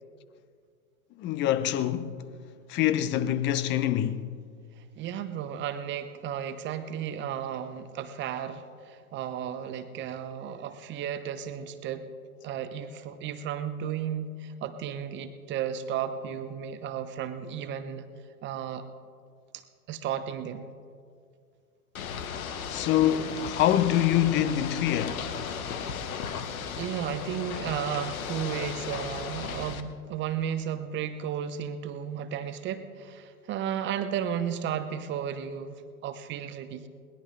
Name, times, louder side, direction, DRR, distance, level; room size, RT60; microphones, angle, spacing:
voice 1, 1.2-2.3 2.7-4.3 22.7-25.3, left 11 dB, 25° left, 0.7 m, -25 dB
voice 2, 4.8-12.1 12.4-18.1 18.4-18.9 19.5-19.6 19.9-20.6 26.7-35.8 36.0-36.9, right 9 dB, 25° right, 0.9 m, -34 dB
Ocean / Boat Water vehicle, 21.9-29.8, left 7 dB, 70° left, 1.4 m, -35 dB
21.5 x 19.5 x 3.3 m
hypercardioid pair, 110°, 44 cm